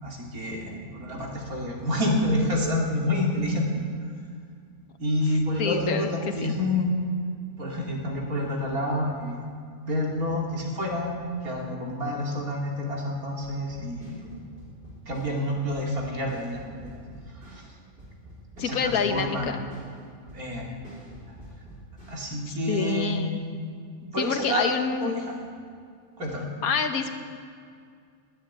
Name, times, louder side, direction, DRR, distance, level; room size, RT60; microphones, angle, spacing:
voice 1, 0.0-3.8 5.0-6.9 7.6-9.4 9.9-14.2 15.1-16.9 17.4-17.6 18.6-19.5 20.3-20.7 22.1-23.4 24.1-25.4 26.2-26.5, left 1 dB, 80° right, -1 dB, 3.2 m, -28 dB
voice 2, 5.6-6.1 6.4-6.5 18.6-19.7 22.5-23.4 24.2-25.2 26.6-27.1, left 6 dB, 80° left, 7 dB, 1.6 m, -27 dB
sound 1, 13.4-22.3, right 1 dB, 35° right, 4.8 m, -47 dB
21.5 x 8.0 x 8.5 m, 2.2 s
omnidirectional pair, 1.5 m